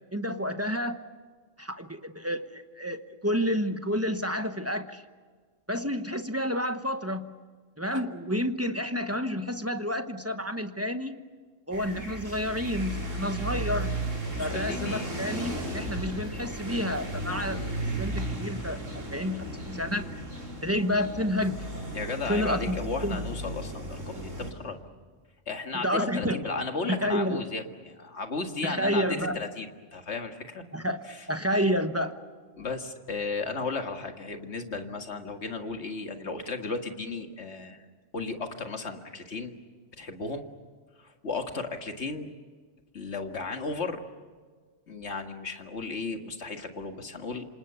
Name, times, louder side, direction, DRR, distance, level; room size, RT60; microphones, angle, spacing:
voice 1, 0.1-1.0 1.6-5.0 5.7-7.3 7.8-11.2 11.7-14.0 14.4-17.7 18.0-18.8 19.1-20.2 20.6-21.7 22.2-23.2 25.7-26.5 26.9-27.4 28.6-29.4 30.7-31.0 31.3-32.2, equal, 15° right, 8 dB, 1.0 m, -30 dB
sound 1, 11.7-24.5, right 1 dB, 80° right, 4.8 m, -35 dB
voice 2, 14.4-15.1 21.9-24.8 25.5-30.6 31.1-31.2 32.6-37.9 38.1-39.6 39.9-40.5 41.0-42.3 42.9-44.0 44.9-47.5, left 3 dB, 60° left, 5 dB, 2.1 m, -34 dB
27.5 x 26.5 x 6.9 m, 1.5 s
omnidirectional pair, 1.3 m